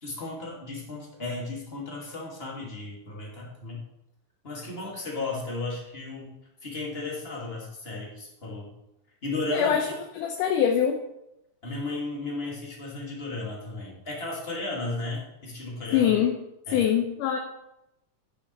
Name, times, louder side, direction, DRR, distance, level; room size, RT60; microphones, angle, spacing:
voice 1, 0.0-3.8 4.4-6.3 6.6-8.7 9.2-9.8 11.6-16.1 16.7-16.8, left 2 dB, 20° left, -3 dB, 2.6 m, -34 dB
voice 2, 9.5-9.9 10.1-11.0 15.9-16.4 16.7-17.4, left 9 dB, 75° left, 3 dB, 2.4 m, -23 dB
10.0 x 8.9 x 4.8 m, 0.87 s
omnidirectional pair, 3.9 m